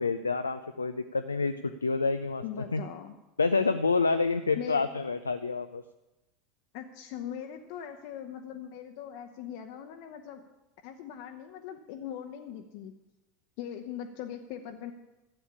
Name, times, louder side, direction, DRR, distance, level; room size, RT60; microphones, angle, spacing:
voice 1, 0.0-2.4 2.7-2.8 3.4-5.8, left 4 dB, 85° left, 9 dB, 0.5 m, -28 dB
voice 2, 2.4-3.2 4.6-4.9 6.7-10.4 10.8-12.9 13.6-14.9, left 9 dB, 55° left, 5 dB, 1.0 m, -40 dB
13.0 x 8.6 x 8.5 m, 1.0 s
figure-of-eight pair, 75°, 0 cm